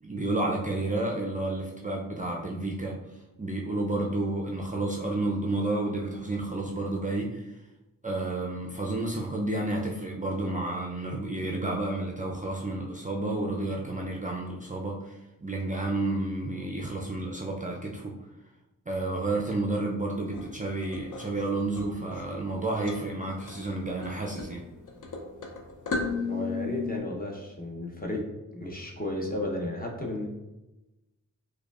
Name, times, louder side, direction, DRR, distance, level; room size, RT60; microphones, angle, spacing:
voice 1, 0.0-3.0 3.4-7.5 8.0-18.1 18.9-24.6, right 2 dB, 25° right, -1 dB, 0.4 m, -31 dB
sound 1, 20.3-27.0, left 4 dB, 60° left, 0.6 m, -36 dB
voice 2, 26.3-28.2 28.5-30.3, left 1 dB, 25° left, 0 dB, 0.7 m, -33 dB
4.8 x 2.3 x 2.4 m, 0.99 s
wide cardioid pair, 75°, 35 cm